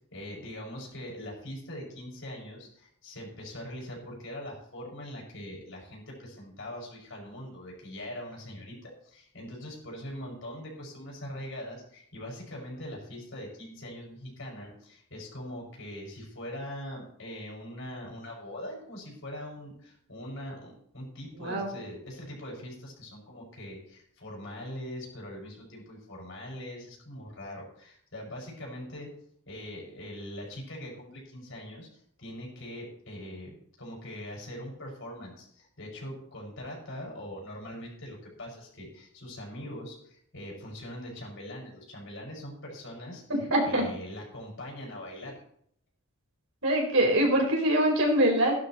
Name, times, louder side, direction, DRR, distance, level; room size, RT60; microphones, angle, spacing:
voice 1, 0.1-29.1 29.5-43.4 43.7-45.4, left 1 dB, 60° left, -2 dB, 6.3 m, -42 dB
voice 2, 21.4-21.7 43.3-43.9 46.6-48.5, right 1 dB, 65° right, 0 dB, 4.5 m, -24 dB
16.5 x 11.5 x 3.2 m, 0.66 s
head